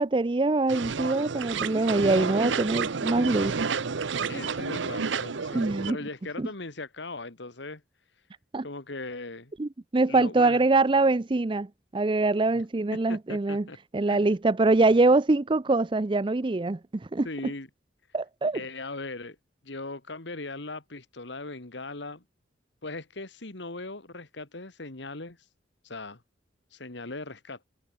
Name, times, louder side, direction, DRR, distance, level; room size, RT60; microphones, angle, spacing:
voice 1, 0.0-3.5 5.5-6.0 6.4-6.5 8.5-8.6 9.6-11.7 11.9-13.7 13.9-17.3 18.1-18.6, right 2 dB, 25° right, 0.5 m, -24 dB
sound 1, 0.7-5.9, right 5 dB, 75° right, 0.7 m, -30 dB
voice 2, 4.3-7.8 8.6-9.5 10.1-10.6 12.5-12.6 13.1-13.8 14.1-14.3 17.2-17.7 18.5-19.4 19.6-22.2 22.8-25.5 25.8-26.2 26.7-27.6, left 2 dB, 65° left, 2.0 m, -39 dB
head